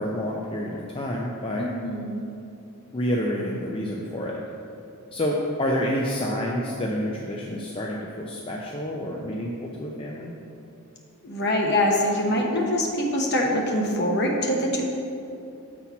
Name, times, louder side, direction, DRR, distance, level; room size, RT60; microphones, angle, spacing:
voice 1, 0.0-1.7 2.9-4.4 5.1-10.3, equal, 25° left, -2 dB, 0.4 m, -28 dB
voice 2, 1.6-2.2 11.2-14.8, left 1 dB, 50° left, 0 dB, 1.0 m, -24 dB
7.0 x 4.3 x 5.7 m, 2.7 s
head